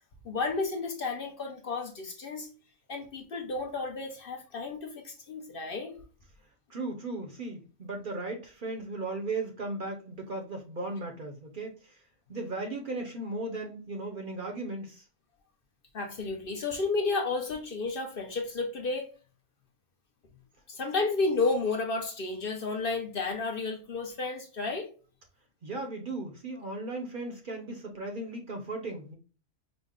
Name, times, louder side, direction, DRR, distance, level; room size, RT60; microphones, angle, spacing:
voice 1, 0.2-2.5 2.9-6.0 15.9-19.1 20.7-24.9, left 3 dB, 55° left, 3 dB, 0.8 m, -32 dB
voice 2, 6.7-12.0 12.3-15.1 25.6-29.1, right 2 dB, 50° right, 3 dB, 0.7 m, -36 dB
5.0 x 2.1 x 3.6 m, 0.36 s
omnidirectional pair, 1.3 m